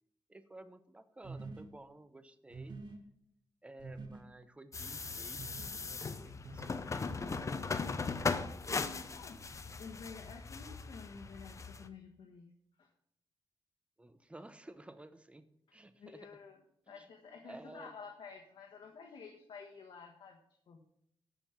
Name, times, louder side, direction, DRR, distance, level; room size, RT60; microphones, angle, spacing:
voice 1, 0.3-2.8 3.6-7.1 14.0-16.4 16.9-17.1 17.4-17.9, right 2 dB, 15° right, 11 dB, 0.8 m, -54 dB
sound 1, 1.2-1.7 2.5-3.0 3.8-4.2 5.4-5.8 6.5-6.7 7.1-7.3, right 3 dB, 55° right, 1.7 m, -46 dB
sound 2, 4.7-11.9, left 4 dB, 35° left, 0.8 m, -38 dB
voice 2, 8.7-9.4 9.8-12.5 12.8-12.9 16.0-16.6 16.9-20.4 20.7-20.8, left 5 dB, 75° left, 1 dB, 1.4 m, -51 dB
13.5 x 5.2 x 5.8 m, 0.74 s
cardioid pair, 105°, 9 cm